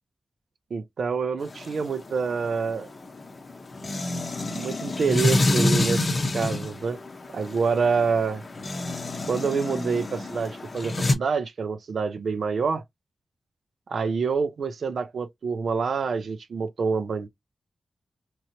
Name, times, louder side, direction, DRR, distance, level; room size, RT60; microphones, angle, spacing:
voice 1, 0.7-2.9 4.5-7.0 7.3-8.4 9.3-12.8 13.9-17.3, right 5 dB, 70° right, 0.4 m, -27 dB
sound 1, 1.4-11.1, left 2 dB, 40° left, 0.6 m, -28 dB
3.0 x 2.8 x 2.8 m
wide cardioid pair, 140°, 0 cm